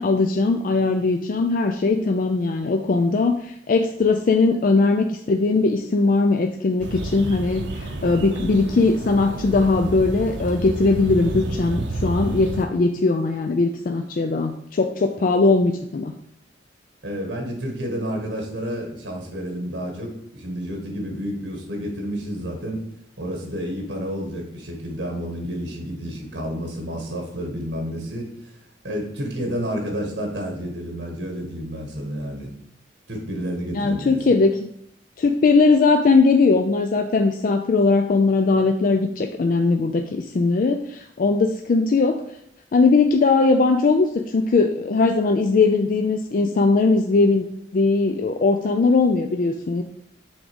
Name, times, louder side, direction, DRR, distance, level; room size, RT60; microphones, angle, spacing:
voice 1, 0.0-16.1 33.7-34.5 35.2-42.2 42.7-47.4 47.7-49.8, left 3 dB, 45° left, 5 dB, 0.3 m, -19 dB
sound 1, 6.8-12.6, right 2 dB, 80° right, 0.7 m, -30 dB
voice 2, 17.0-22.8 23.2-28.5 28.8-32.5 33.1-34.3, equal, 65° right, 1 dB, 1.4 m, -30 dB
6.1 x 3.5 x 5.2 m, 0.73 s
head